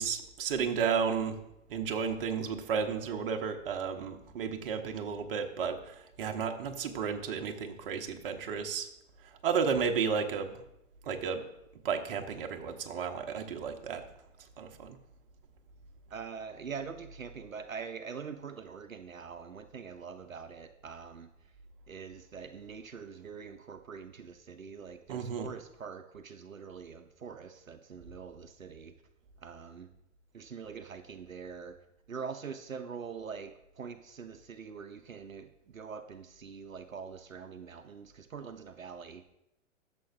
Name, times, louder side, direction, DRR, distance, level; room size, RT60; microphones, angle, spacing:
voice 1, 0.0-1.4 1.7-8.9 9.4-10.5 11.1-11.4 11.8-14.0 14.6-15.0 25.1-25.5, right 6 dB, 45° right, 5 dB, 1.0 m, -33 dB
voice 2, 16.1-21.3 21.9-28.9 29.4-29.9 30.3-31.8 32.1-39.3, right 6 dB, 85° right, 8 dB, 0.7 m, -44 dB
12.5 x 6.9 x 2.6 m, 0.85 s
figure-of-eight pair, 115°, 39 cm